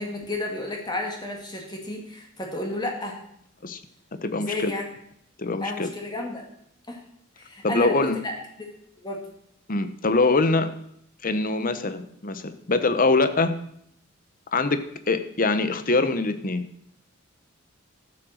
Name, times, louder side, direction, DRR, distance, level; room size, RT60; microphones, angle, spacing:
voice 1, 0.0-3.2 4.3-4.9 5.6-6.5 6.9-7.0 7.4-8.7 9.0-9.2, left 2 dB, 20° left, 1 dB, 2.0 m, -32 dB
voice 2, 4.2-4.7 5.4-5.9 7.6-8.2 9.7-10.7 11.2-13.5 14.5-14.8 15.1-16.7, left 3 dB, 45° left, 10 dB, 1.0 m, -23 dB
13.0 x 7.9 x 6.5 m, 0.72 s
head